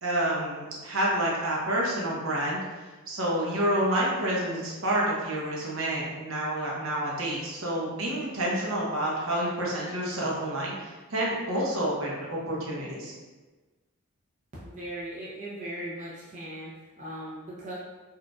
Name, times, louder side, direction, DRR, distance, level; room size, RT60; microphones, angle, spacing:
voice 1, 0.0-2.6 3.1-13.1, right 1 dB, 65° right, -4 dB, 0.8 m, -28 dB
voice 2, 14.6-17.7, right 1 dB, 35° right, -7 dB, 0.6 m, -39 dB
4.4 x 2.4 x 2.3 m, 1.3 s
head